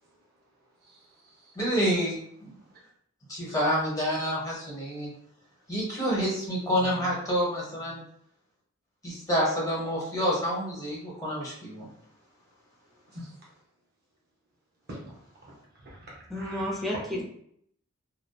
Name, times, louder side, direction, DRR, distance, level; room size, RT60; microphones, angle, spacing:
voice 1, 0.8-1.5 2.7-2.8 6.6-7.1 13.1-13.3 14.9-15.0 15.4-16.9, right 1 dB, 50° right, -4 dB, 0.6 m, -45 dB
voice 2, 1.5-2.5 3.3-5.1 5.7-8.0 9.0-11.9, equal, 15° left, -5 dB, 0.9 m, -28 dB
voice 3, 16.3-17.2, left 1 dB, ahead, -3 dB, 0.5 m, -31 dB
2.7 x 2.1 x 2.3 m, 0.68 s
head